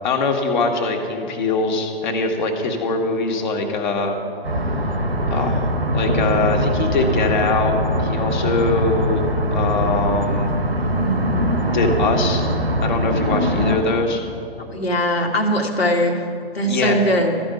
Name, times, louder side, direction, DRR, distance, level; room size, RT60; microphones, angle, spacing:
voice 1, 0.0-4.2 5.3-5.6 5.9-10.5 11.7-12.5 12.8-14.2 16.7-16.9, left 3 dB, 50° left, 3 dB, 1.6 m, -22 dB
sound 1, 4.4-13.8, equal, 85° right, 1.4 m, -21 dB
voice 2, 14.7-16.2 16.5-17.3, equal, 80° left, 2 dB, 1.7 m, -20 dB
13.5 x 5.3 x 9.0 m, 2.8 s
figure-of-eight pair, 120°, 30 cm